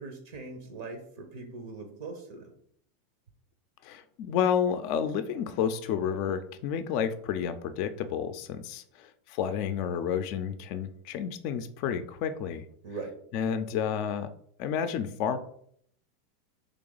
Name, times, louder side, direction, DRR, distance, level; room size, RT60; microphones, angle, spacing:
voice 1, 0.0-2.5 12.8-13.1, right 3 dB, 70° right, 4 dB, 0.8 m, -41 dB
voice 2, 3.8-12.6 13.3-14.3 14.6-15.4, left 8 dB, 55° left, 9 dB, 0.4 m, -30 dB
3.3 x 2.9 x 3.9 m, 0.65 s
hypercardioid pair, 95°, 0 cm